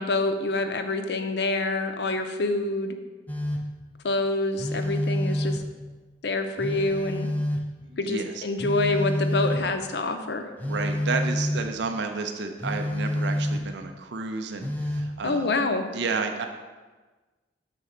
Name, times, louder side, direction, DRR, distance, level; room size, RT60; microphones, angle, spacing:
voice 1, 0.0-2.9 4.0-5.6 6.2-7.3 8.0-10.5 15.2-15.8, left 2 dB, 65° left, 7 dB, 0.6 m, -26 dB
Telephone, 3.3-3.8 4.6-5.8 6.6-7.8 8.6-9.8 10.6-11.7 12.6-13.8 14.6-15.2, left 1 dB, 10° left, 0.4 m, -28 dB
voice 2, 7.8-8.4 10.7-15.6 15.9-16.4, right 4 dB, 70° right, 5 dB, 0.5 m, -31 dB
6.7 x 4.2 x 5.0 m, 1.3 s
head